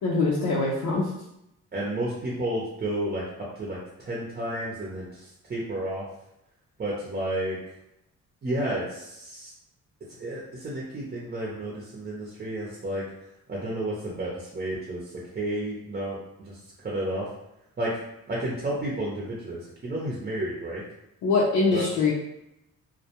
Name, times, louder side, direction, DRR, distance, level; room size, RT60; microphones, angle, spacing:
voice 1, 0.0-1.1 21.2-22.1, left 3 dB, 75° left, -4 dB, 0.6 m, -23 dB
voice 2, 1.7-6.1 6.8-7.6 8.4-9.5 10.2-13.0 13.5-15.0 15.3-17.3 17.8-18.0 18.3-20.8 21.7-21.8, right 1 dB, 30° right, -4 dB, 0.7 m, -31 dB
2.2 x 2.2 x 2.9 m, 0.84 s
cardioid pair, 90°, 30 cm